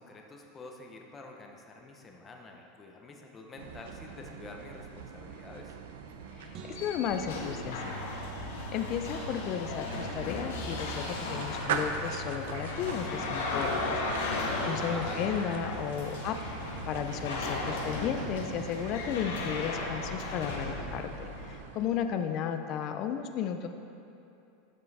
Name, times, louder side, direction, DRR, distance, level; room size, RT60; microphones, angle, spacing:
voice 1, 0.0-5.8 14.8-15.3, left 3 dB, 15° left, 1 dB, 0.8 m, -47 dB
sound 1, 3.6-22.2, right 6 dB, 80° right, 0.6 m, -42 dB
sound 2, 6.4-21.6, left 2 dB, 85° left, 1.4 m, -36 dB
voice 2, 6.4-8.0 8.7-16.4 16.9-23.7, left 8 dB, 35° left, 8 dB, 0.5 m, -34 dB
sound 3, 6.5-8.9, right 5 dB, 35° right, 0.7 m, -51 dB
12.5 x 5.5 x 4.1 m, 2.7 s
supercardioid pair, 165°, 0 cm